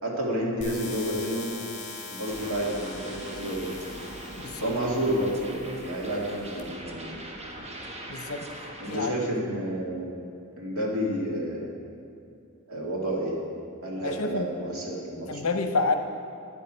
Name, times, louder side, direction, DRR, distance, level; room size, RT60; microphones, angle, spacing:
voice 1, 0.0-1.6 2.1-3.7 4.6-7.2 8.8-10.1 10.6-11.7 12.7-13.4 13.8-15.4, equal, 70° right, -2 dB, 2.2 m, -30 dB
sound 1, 0.6-6.6, left 3 dB, 30° left, 2.2 m, -42 dB
sound 2, 2.2-9.1, right 1 dB, 30° right, 1.2 m, -41 dB
voice 2, 4.4-4.7 8.1-8.5 8.9-9.1 14.0-14.5 15.3-16.0, left 3 dB, 70° left, 6 dB, 0.9 m, -28 dB
11.5 x 10.0 x 4.5 m, 2.5 s
head